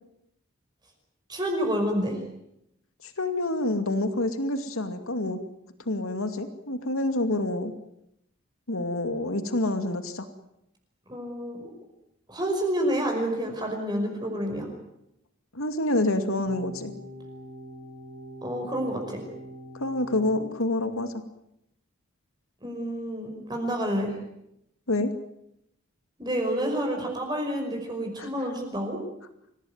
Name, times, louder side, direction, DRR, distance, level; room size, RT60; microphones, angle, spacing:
voice 1, 1.3-2.2 11.1-11.7 12.3-14.7 18.4-19.3 22.6-24.1 26.2-29.0, equal, 20° right, 2 dB, 5.3 m, -29 dB
voice 2, 3.0-5.4 5.9-7.7 8.7-10.3 15.5-16.9 19.7-21.2 24.9-25.1 28.2-28.3, left 2 dB, 80° left, 8 dB, 2.4 m, -27 dB
sound 1, 16.5-20.5, equal, 40° right, 4.7 m, -43 dB
26.5 x 18.0 x 9.5 m, 0.81 s
head